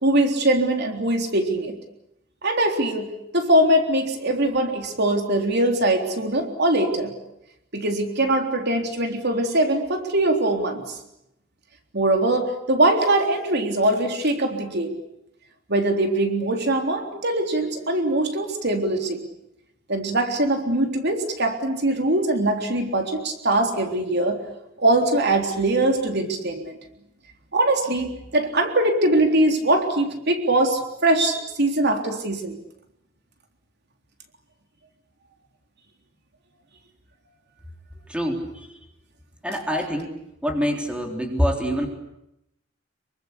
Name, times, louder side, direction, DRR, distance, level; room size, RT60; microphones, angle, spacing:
voice 1, 0.0-1.8 2.4-7.1 7.7-11.0 11.9-14.9 15.7-19.2 19.9-24.4 24.8-26.8 27.5-32.6, right 1 dB, 55° right, 4 dB, 3.7 m, -22 dB
voice 2, 38.1-38.8 39.4-41.9, equal, 5° right, 2 dB, 3.7 m, -26 dB
26.5 x 24.0 x 8.4 m, 0.83 s
head